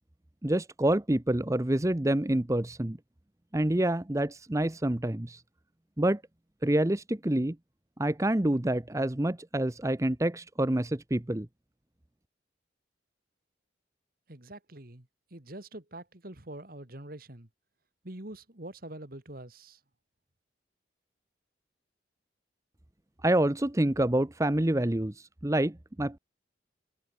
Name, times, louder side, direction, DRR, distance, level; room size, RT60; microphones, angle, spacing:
voice 1, 0.4-3.0 3.5-5.4 6.0-6.2 6.6-7.6 8.0-11.5 23.2-26.2, right 1 dB, 15° right, 0.7 m, -27 dB
voice 2, 14.3-17.5 18.0-19.8, right 1 dB, 50° right, 2.2 m, -45 dB
head